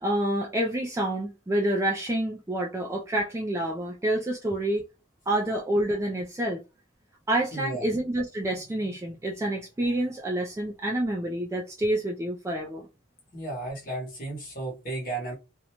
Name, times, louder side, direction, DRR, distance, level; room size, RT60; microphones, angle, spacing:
voice 1, 0.0-4.8 5.3-6.6 7.3-12.9, right 1 dB, 15° right, 0.3 m, -28 dB
voice 2, 7.5-7.9 13.3-15.3, right 2 dB, 45° left, 1.1 m, -34 dB
2.5 x 2.2 x 2.9 m
head